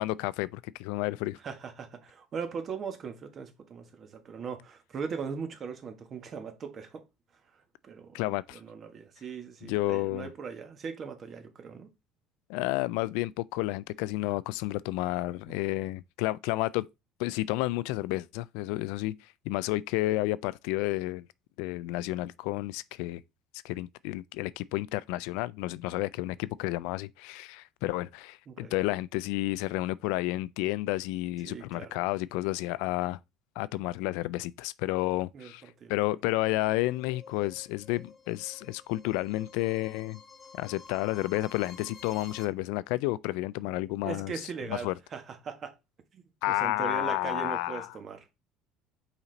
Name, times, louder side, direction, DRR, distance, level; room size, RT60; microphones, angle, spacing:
voice 1, 0.0-1.4 8.1-8.6 9.6-10.3 12.5-16.9 17.2-19.2 19.5-21.3 21.6-23.2 23.6-33.2 33.6-35.6 35.9-40.2 40.6-44.3 44.7-44.9 46.4-47.9, left 18 dB, 80° left, 0.3 m, -31 dB
voice 2, 1.4-7.0 7.5-8.2 8.5-11.9 15.5-15.8 28.5-28.7 31.4-32.0 35.3-36.2 44.0-45.7 46.1-48.3, right 6 dB, 40° right, 1.4 m, -39 dB
sound 1, 36.4-42.4, left 5 dB, 25° left, 1.1 m, -51 dB
5.7 x 4.3 x 3.9 m
supercardioid pair, 110°, 0 cm